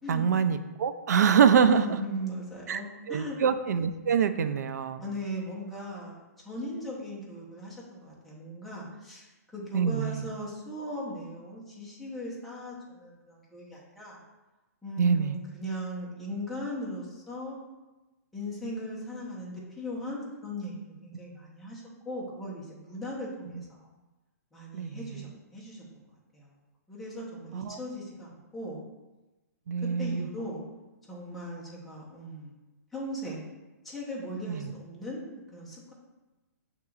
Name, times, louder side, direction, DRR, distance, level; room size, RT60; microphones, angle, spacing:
voice 1, 0.1-1.8 2.7-2.8 3.1-5.0 9.7-10.2 15.0-15.4 24.7-25.0 27.5-27.8 29.7-30.3 34.5-34.6, right 7 dB, 80° right, 10 dB, 0.4 m, -25 dB
voice 2, 1.6-3.4 5.0-6.2 6.4-9.3 9.5-14.2 14.8-17.6 18.3-23.8 24.5-26.0 26.3-26.5 26.9-28.8 29.8-30.6 31.1-32.5 32.9-33.5 33.8-35.9, equal, ahead, -6 dB, 0.7 m, -38 dB
6.5 x 2.9 x 2.4 m, 1.1 s
hypercardioid pair, 160°, 9 cm